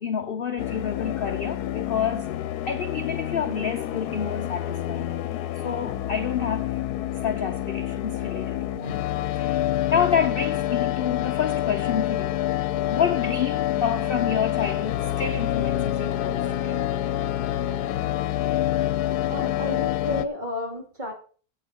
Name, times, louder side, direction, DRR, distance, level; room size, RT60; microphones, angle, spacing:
voice 1, 0.0-2.3 2.6-5.2 5.6-6.8 7.2-9.1 9.4-12.4 12.9-16.8, left 7 dB, 45° left, 0.8 m, -28 dB
sound 1, 0.6-20.2, left 13 dB, 85° left, 1.2 m, -27 dB
voice 2, 19.3-21.1, left 1 dB, 30° right, 3.0 m, -32 dB
8.9 x 8.4 x 6.2 m
omnidirectional pair, 1.6 m